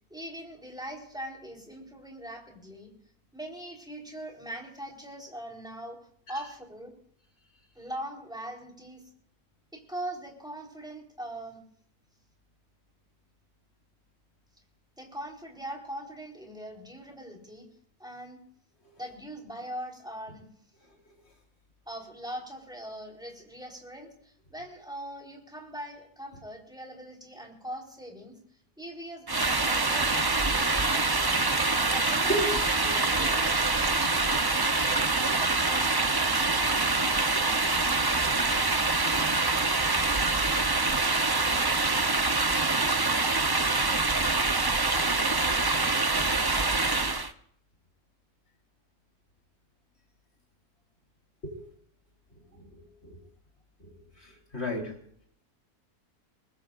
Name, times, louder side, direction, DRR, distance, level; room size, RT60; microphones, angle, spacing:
voice 1, 0.1-2.9 3.3-6.0 6.3-7.0 7.8-9.0 9.7-11.6 15.0-17.7 18.0-18.4 19.0-20.5 21.9-31.5 31.8-35.1 35.4-37.1, right 1 dB, ahead, 0 dB, 3.9 m, -41 dB
sound 1, 29.3-47.3, right 3 dB, 25° right, 0.5 m, -25 dB
voice 2, 52.5-53.2 53.8-53.9 54.2-54.9, equal, 40° left, 0 dB, 4.0 m, -33 dB
23.5 x 20.0 x 2.5 m, 0.64 s
omnidirectional pair, 1.6 m